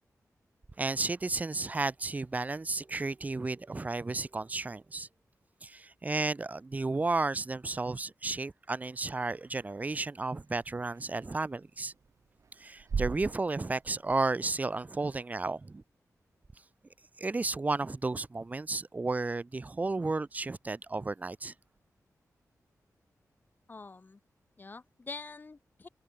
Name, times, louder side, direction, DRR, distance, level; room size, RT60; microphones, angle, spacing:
voice 1, 0.8-5.1 5.6-11.9 12.6-15.8 17.2-21.5, right 3 dB, 25° right, 2.6 m, -33 dB
sound 1, 8.9-14.8, right 6 dB, 55° right, 2.9 m, -42 dB
voice 2, 23.7-24.2 24.6-25.9, left 3 dB, 30° left, 6.6 m, -45 dB
wide cardioid pair, 170°, 6 cm